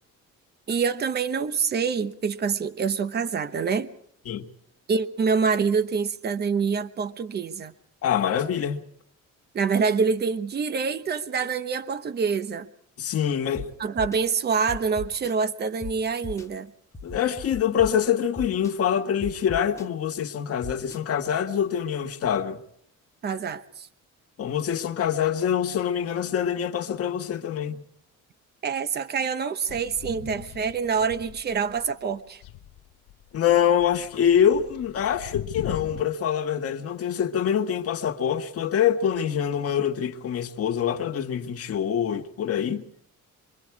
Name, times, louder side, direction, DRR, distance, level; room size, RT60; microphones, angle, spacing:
voice 1, 0.7-3.9 4.9-7.7 9.5-12.7 13.8-16.7 23.2-23.9 28.6-32.4, right 5 dB, 30° right, 1.0 m, -26 dB
voice 2, 8.0-8.8 13.0-13.7 17.0-22.6 24.4-27.8 30.1-30.3 33.3-42.8, left 9 dB, 50° left, 1.7 m, -25 dB
sound 1, 13.5-13.6 14.0-14.2 14.7-15.3 15.8-15.9 16.2-16.4 16.9-17.9 18.4-18.7 19.2-19.8 20.6-21.0, left 3 dB, 10° left, 1.1 m, -36 dB
sound 2, 29.7-32.0 32.3-36.0, left 15 dB, 85° left, 0.8 m, -40 dB
27.0 x 23.5 x 4.8 m
cardioid pair, 150°, 31 cm